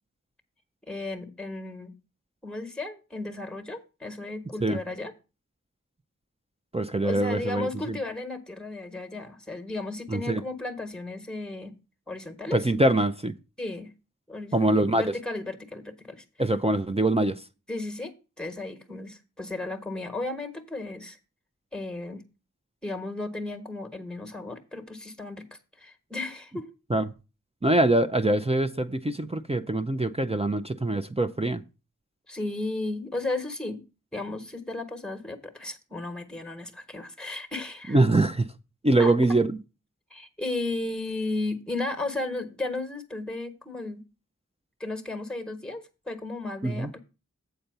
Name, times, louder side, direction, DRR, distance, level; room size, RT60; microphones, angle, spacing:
voice 1, 0.9-1.9 2.4-5.1 7.0-11.7 12.1-12.6 13.6-13.9 14.3-16.2 17.7-21.2 21.7-22.2 22.8-25.5 25.8-26.7 32.3-33.8 34.1-38.0 39.0-39.1 40.1-44.0 44.8-47.0, left 2 dB, 5° left, 1.2 m, -34 dB
voice 2, 6.7-8.0 10.1-10.4 12.5-13.3 14.5-15.1 16.4-17.4 26.9-27.0 27.6-31.6 37.9-38.5 38.8-39.6 46.6-46.9, right 2 dB, 20° right, 0.5 m, -23 dB
8.0 x 4.3 x 6.7 m
wide cardioid pair, 50°, 31 cm